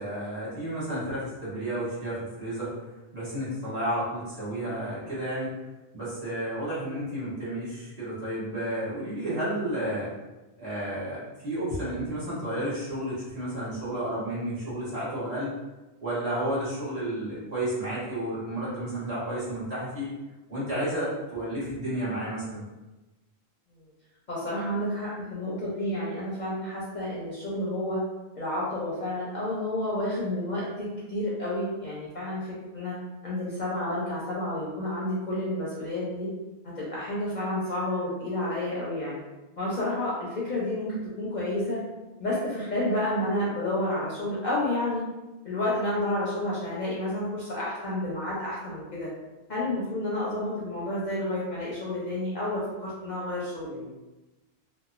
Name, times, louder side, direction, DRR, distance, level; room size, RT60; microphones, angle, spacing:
voice 1, 0.0-2.7 3.1-5.5 5.9-10.1 10.6-15.6 16.0-20.1 20.5-22.6, right 1 dB, 40° right, -11 dB, 1.3 m, -31 dB
voice 2, 24.3-28.0 28.4-33.0 33.2-36.3 36.6-39.2 39.6-41.8 42.2-45.0 45.4-49.1 49.5-53.9, left 1 dB, 55° left, -7 dB, 0.6 m, -30 dB
2.9 x 2.0 x 2.4 m, 1.1 s
omnidirectional pair, 1.1 m